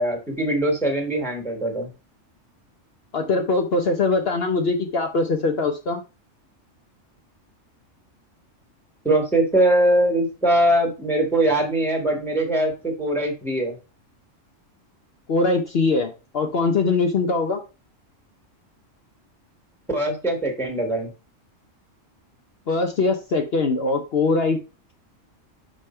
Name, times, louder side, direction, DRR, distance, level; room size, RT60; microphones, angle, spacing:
voice 1, 0.0-1.9 9.0-13.8 19.9-21.1, right 1 dB, ahead, 2 dB, 1.6 m, -21 dB
voice 2, 3.1-6.0 15.3-17.6 22.7-24.6, left 3 dB, 55° left, 4 dB, 1.0 m, -22 dB
5.4 x 5.1 x 4.3 m, 0.31 s
omnidirectional pair, 1.3 m